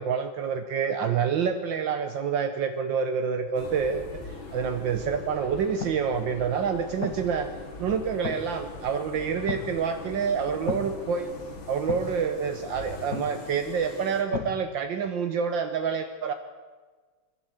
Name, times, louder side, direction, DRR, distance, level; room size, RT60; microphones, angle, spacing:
voice 1, 0.0-7.5 7.8-11.3 11.7-16.3, right 6 dB, 70° right, 7 dB, 1.7 m, -27 dB
sound 1, 3.6-14.2, left 3 dB, 85° left, 3.1 m, -42 dB
sound 2, 5.7-14.6, left 6 dB, 50° left, 1.9 m, -40 dB
26.0 x 12.5 x 8.1 m, 1.4 s
omnidirectional pair, 2.1 m